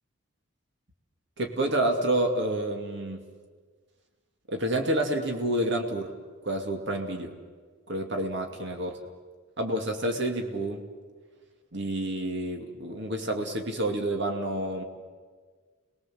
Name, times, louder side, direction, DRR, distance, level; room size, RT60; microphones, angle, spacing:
voice 1, 1.4-3.2 4.5-6.1 6.4-7.3 7.9-8.9 9.6-10.8 11.7-14.8, right 1 dB, 55° right, 3 dB, 2.4 m, -29 dB
29.5 x 21.0 x 7.7 m, 1.5 s
head